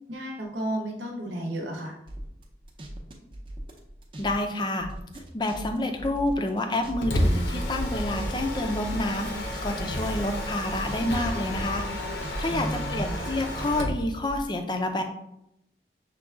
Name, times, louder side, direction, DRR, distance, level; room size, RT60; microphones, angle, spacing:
voice 1, 0.0-2.0 12.5-13.2, right 1 dB, 85° right, 0 dB, 0.9 m, -33 dB
sound 1, 2.1-4.3 4.6-7.2 7.5-11.1 11.4-12.6 13.0-14.4, right 1 dB, 30° right, 0.6 m, -39 dB
voice 2, 4.2-4.9 5.3-11.8 12.4-15.0, left 1 dB, 25° left, 5 dB, 0.4 m, -28 dB
Mechanisms, 6.8-14.0, left 1 dB, 80° left, 0.8 m, -31 dB
6.1 x 2.2 x 3.6 m, 0.81 s
head